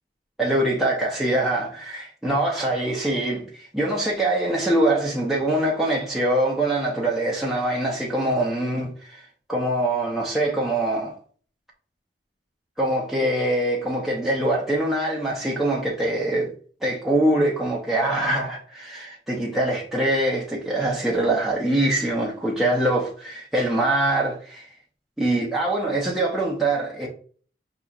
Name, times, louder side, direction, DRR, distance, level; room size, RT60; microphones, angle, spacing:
voice 1, 0.4-9.2 9.5-11.1 12.8-16.5 16.8-24.7 25.2-27.1, right 1 dB, ahead, 0.7 m, -23 dB
5.5 x 2.9 x 2.4 m
head